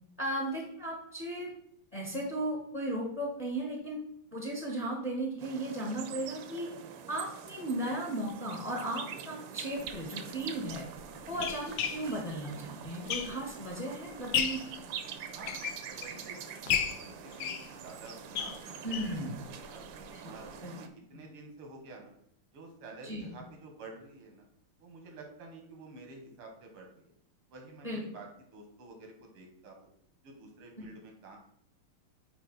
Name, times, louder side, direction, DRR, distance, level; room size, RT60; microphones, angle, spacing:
voice 1, 0.2-1.5 1.9-4.0 4.3-6.7 7.1-10.8 11.3-14.6 18.8-19.4 20.1-20.2 20.6-20.8 23.0-23.3 27.8-28.0, right 1 dB, 25° left, -2 dB, 0.9 m, -36 dB
sound 1, 5.4-20.9, right 7 dB, 70° right, 1.2 m, -45 dB
sound 2, 9.8-9.9 10.7-13.7 14.1-14.7 15.3-16.2 16.7-19.2 19.6-19.7 20.0-20.1 20.4-20.5, left 8 dB, 70° left, 1.0 m, -34 dB
voice 2, 15.9-17.6 17.8-19.8 20.2-20.5 20.8-22.1 22.5-24.5 24.8-27.1 27.5-29.9 30.2-31.4, right 3 dB, 90° right, 2 dB, 2.2 m, -50 dB
8.7 x 3.0 x 4.1 m, 0.72 s
omnidirectional pair, 2.4 m